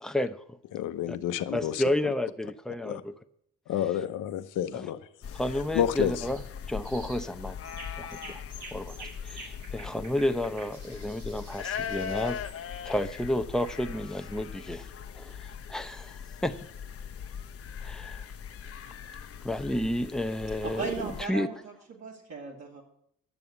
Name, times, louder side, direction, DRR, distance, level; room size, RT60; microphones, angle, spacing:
voice 1, 0.0-0.6 1.1-1.2 1.5-3.1 4.7-4.9 5.3-6.4 6.7-8.4 8.7-12.4 12.8-14.9 15.1-16.5 17.8-18.2 19.4-21.5, left 1 dB, ahead, 8 dB, 0.7 m, -31 dB
voice 2, 0.7-1.8 2.8-3.0 3.7-5.0 5.7-6.1, left 11 dB, 90° left, 11 dB, 0.8 m, -29 dB
sound 1, 5.2-21.3, left 8 dB, 50° left, 0.9 m, -40 dB
sound 2, 6.1-6.5 6.8-7.3 7.6-12.6, right 2 dB, 75° right, 3.6 m, -48 dB
voice 3, 20.8-22.8, right 5 dB, 60° right, -3 dB, 2.7 m, -37 dB
11.0 x 7.0 x 8.0 m, 0.71 s
cardioid pair, 90°, 30 cm